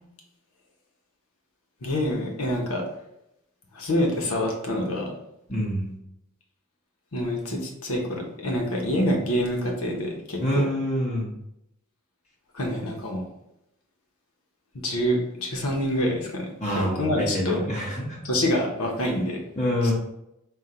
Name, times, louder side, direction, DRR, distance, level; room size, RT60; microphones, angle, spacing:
voice 1, 1.8-2.8 3.7-5.1 7.1-10.6 12.5-13.2 14.8-16.5 16.7-17.6 18.2-19.4, left 1 dB, 80° left, 0 dB, 1.0 m, -26 dB
voice 2, 5.5-6.0 10.4-11.3 16.6-18.2 19.6-19.9, equal, 35° left, -5 dB, 0.9 m, -26 dB
3.8 x 2.5 x 4.3 m, 0.82 s
head